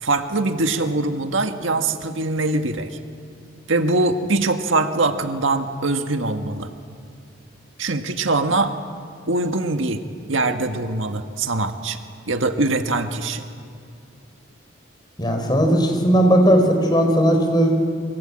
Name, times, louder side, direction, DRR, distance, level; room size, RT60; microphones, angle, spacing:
voice 1, 0.0-2.9 3.7-6.7 7.8-8.7 9.3-10.0 10.3-12.0 12.3-13.4, right 2 dB, 80° right, 6 dB, 1.6 m, -22 dB
voice 2, 15.2-17.7, equal, 20° left, 4 dB, 4.5 m, -17 dB
27.5 x 24.0 x 8.8 m, 2.3 s
head